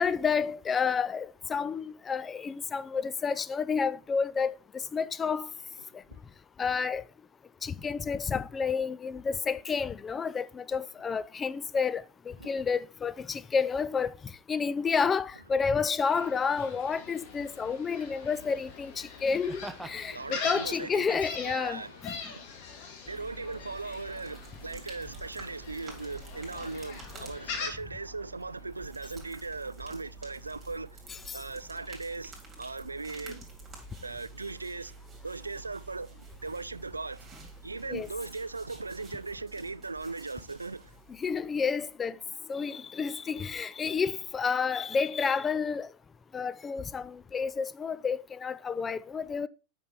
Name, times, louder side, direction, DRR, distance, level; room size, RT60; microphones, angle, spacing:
voice 1, 0.0-4.5 4.9-5.5 6.6-7.0 7.6-14.1 14.5-22.1 37.9-38.1 41.2-42.1 42.5-45.9 46.3-49.5, left 5 dB, 20° left, 0.4 m, -30 dB
Laughter, 15.0-15.2 16.5-16.9 19.2-20.0 20.6-21.5 22.2-22.3, right 1 dB, ahead, 0.9 m, -44 dB
Gull seagull, 16.1-27.7, left 5 dB, 45° left, 2.0 m, -42 dB
voice 2, 20.1-21.2 21.4-22.0 22.3-22.5 23.1-31.0 31.3-33.5 34.0-35.0 35.2-37.3 37.6-40.9, right 3 dB, 80° right, 0.3 m, -38 dB
sound 1, 23.0-41.9, right 3 dB, 20° right, 2.9 m, -49 dB
8.4 x 5.3 x 4.4 m
figure-of-eight pair, 90°, 0 cm